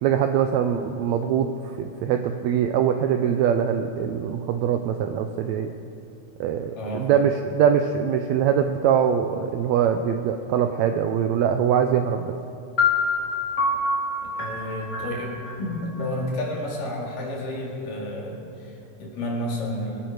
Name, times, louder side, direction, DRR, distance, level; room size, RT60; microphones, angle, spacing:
voice 1, 0.0-5.7 6.4-12.3, right 8 dB, 85° right, 7 dB, 1.6 m, -23 dB
voice 2, 6.7-7.2 14.2-20.0, left 1 dB, 85° left, -2 dB, 3.9 m, -31 dB
sound 1, 12.8-16.6, left 3 dB, 30° left, 2.0 m, -26 dB
23.0 x 9.2 x 4.7 m, 2.7 s
omnidirectional pair, 3.7 m